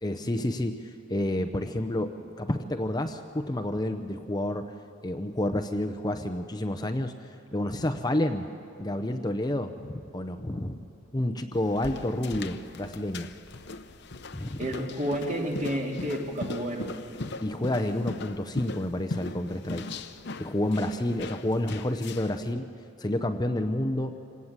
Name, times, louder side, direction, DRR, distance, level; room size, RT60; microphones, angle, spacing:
voice 1, 0.0-4.7 5.0-7.1 7.5-8.5 8.8-10.8 11.1-13.3 14.3-14.6 17.4-19.8 20.4-22.7 23.0-24.2, left 1 dB, 20° left, 7 dB, 0.7 m, -29 dB
sound 1, 11.5-22.4, left 3 dB, 60° left, 0.8 m, -39 dB
voice 2, 14.6-16.9, equal, 40° right, 0 dB, 2.8 m, -30 dB
26.5 x 18.0 x 7.4 m, 2.9 s
head